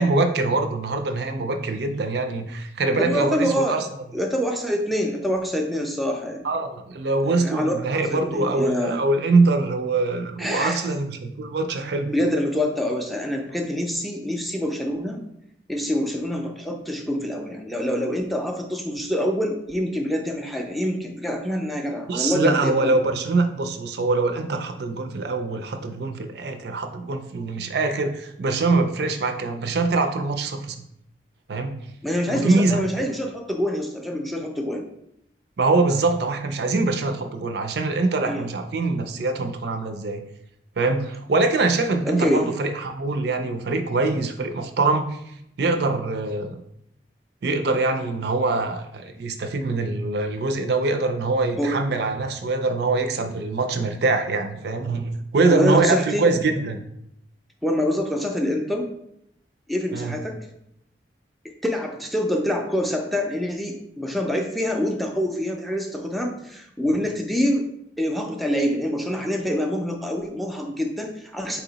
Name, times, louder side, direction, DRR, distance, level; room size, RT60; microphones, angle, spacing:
voice 1, 0.0-3.9 6.4-12.1 22.1-30.8 31.5-31.8 32.3-32.8 35.6-40.2 40.8-45.2 45.6-46.6 47.4-56.8 59.9-60.2, right 3 dB, 60° right, 7 dB, 0.4 m, -23 dB
voice 2, 3.0-3.8 4.1-6.5 7.2-9.0 10.4-10.9 12.1-15.2 15.7-23.0 32.0-34.8 38.2-38.5 42.1-42.5 51.6-51.8 55.5-56.4 57.6-58.9 59.7-60.5 61.4-67.7 68.0-71.6, equal, ahead, 1 dB, 0.4 m, -26 dB
4.1 x 2.9 x 4.0 m, 0.76 s
head